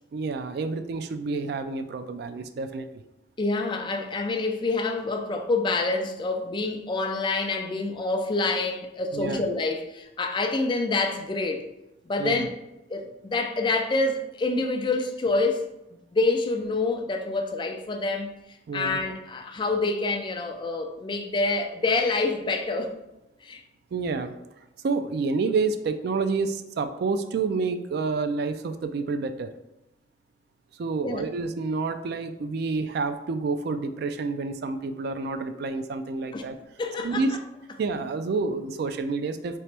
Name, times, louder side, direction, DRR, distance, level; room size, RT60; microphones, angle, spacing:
voice 1, 0.1-2.9 9.1-9.4 12.2-12.5 18.7-19.0 23.9-24.3 24.8-29.5 30.8-36.6 37.0-37.4 37.8-39.6, right 4 dB, 60° right, 0.3 m, -28 dB
voice 2, 3.4-11.6 12.1-12.5 12.9-15.6 16.1-18.3 18.7-22.9 23.4-23.6 31.0-31.2 36.3-36.4 36.8-37.3, left 3 dB, 25° left, 0.4 m, -27 dB
3.3 x 3.0 x 3.3 m
head